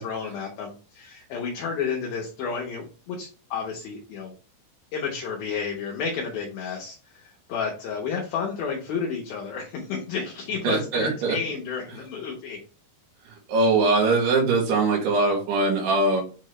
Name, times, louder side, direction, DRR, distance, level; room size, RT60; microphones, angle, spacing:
voice 1, 0.0-4.3 4.9-12.6, left 5 dB, 70° left, -1 dB, 2.6 m, -31 dB
voice 2, 10.6-11.4 13.5-16.2, right 3 dB, 70° right, -1 dB, 4.2 m, -21 dB
8.7 x 3.6 x 3.2 m, 0.36 s
omnidirectional pair, 5.1 m